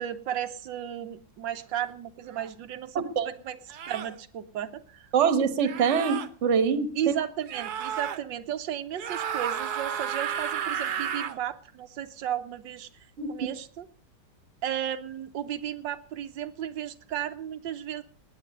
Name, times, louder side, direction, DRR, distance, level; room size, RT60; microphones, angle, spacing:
voice 1, 0.0-5.1 6.9-12.9 13.3-13.9 14.6-18.0, right 10 dB, 85° right, 1.5 m, -34 dB
sound 1, 2.3-2.5 3.7-4.2 5.6-6.3 7.5-8.2 8.9-11.4, right 8 dB, 65° right, 1.4 m, -32 dB
voice 2, 2.9-3.3 5.1-7.1 13.2-13.3, right 6 dB, 45° right, 1.4 m, -24 dB
19.0 x 9.4 x 5.3 m
omnidirectional pair, 2.0 m